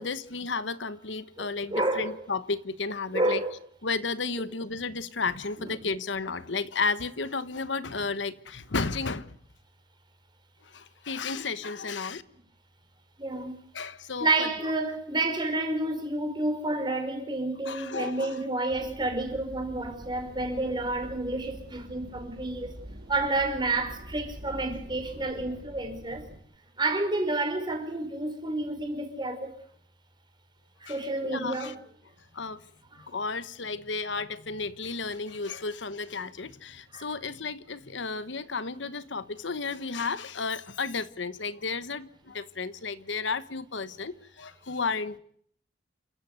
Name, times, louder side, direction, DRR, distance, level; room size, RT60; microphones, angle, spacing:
voice 1, 0.0-3.4 3.8-9.3 10.6-12.2 13.7-14.5 17.6-18.4 30.9-31.7 32.3-32.6 33.1-45.2, left 4 dB, 75° left, 1.1 m, -33 dB
voice 2, 1.4-2.2 3.1-3.5 5.6-5.7 13.2-13.6 14.2-22.7 23.1-26.3 26.8-29.5 30.8-31.8 35.4-35.6 36.9-37.1, right 2 dB, 25° right, 5.2 m, -30 dB
sound 1, 18.7-26.4, right 1 dB, 55° right, 4.4 m, -45 dB
29.0 x 14.5 x 8.1 m
head